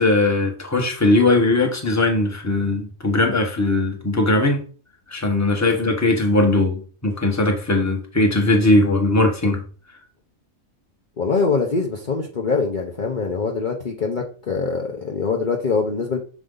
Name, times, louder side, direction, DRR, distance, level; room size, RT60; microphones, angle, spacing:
voice 1, 0.0-4.6 5.1-9.6, left 2 dB, 15° left, 1.2 m, -19 dB
voice 2, 11.2-16.2, left 4 dB, 40° left, 0.9 m, -23 dB
6.8 x 4.8 x 3.8 m
omnidirectional pair, 1.4 m